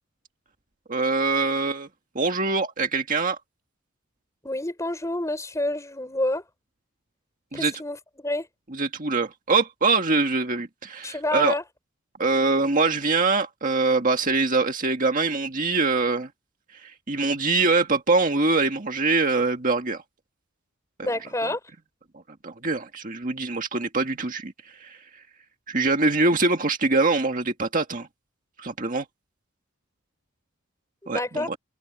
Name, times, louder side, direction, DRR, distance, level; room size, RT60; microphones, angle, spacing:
voice 1, 0.9-1.9 2.2-3.4 7.5-7.7 8.7-11.6 12.2-16.3 16.8-20.0 21.4-21.5 22.4-25.0 25.7-28.1 28.6-29.1 31.1-31.6, right 3 dB, 40° right, 1.8 m, -23 dB
voice 2, 4.4-6.4 7.5-8.5 11.0-11.6 21.0-21.6 31.0-31.5, left 1 dB, 15° left, 5.2 m, -28 dB
head